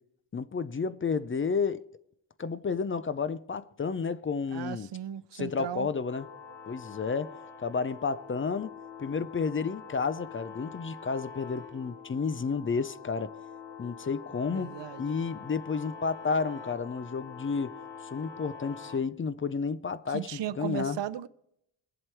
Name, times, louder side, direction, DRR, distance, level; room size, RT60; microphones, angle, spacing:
voice 1, 0.3-1.8 2.4-4.9 5.3-6.3 6.7-7.3 7.6-8.7 9.0-13.4 13.8-17.7 18.1-21.0, left 5 dB, 30° left, 0.4 m, -31 dB
voice 2, 4.5-5.9 14.5-15.1 20.1-21.3, right 10 dB, 70° right, 0.7 m, -36 dB
sound 1, 6.1-19.0, left 6 dB, 85° left, 2.1 m, -45 dB
22.0 x 7.8 x 4.5 m
wide cardioid pair, 160°, 44 cm